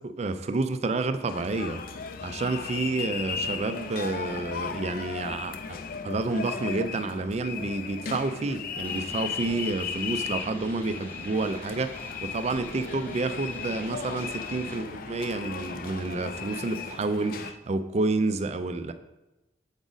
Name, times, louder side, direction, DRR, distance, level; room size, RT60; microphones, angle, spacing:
voice 1, 0.0-1.8 2.2-5.8 6.0-18.9, right 3 dB, 35° right, 10 dB, 0.4 m, -29 dB
sound 1, 1.3-17.5, left 6 dB, 50° left, 0.4 m, -36 dB
sound 2, 8.8-14.8, equal, 10° left, 0.8 m, -46 dB
7.1 x 5.0 x 3.9 m, 0.98 s
head